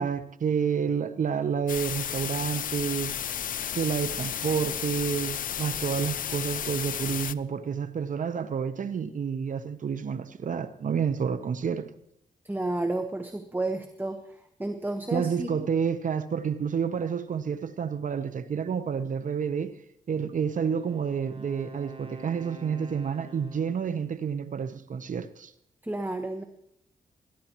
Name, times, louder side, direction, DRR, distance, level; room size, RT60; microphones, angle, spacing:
voice 1, 0.0-3.1 3.7-11.9 15.1-19.8 20.1-25.5, right 7 dB, 65° right, 0.8 m, -29 dB
sound 1, 1.7-7.3, left 9 dB, 70° left, 0.5 m, -33 dB
voice 2, 12.4-15.7 25.8-26.4, right 2 dB, 15° right, 1.2 m, -32 dB
Wind instrument woodwind instrument, 20.3-24.1, right 2 dB, 40° right, 1.4 m, -47 dB
21.0 x 11.5 x 3.0 m
cardioid pair, 70°, 15 cm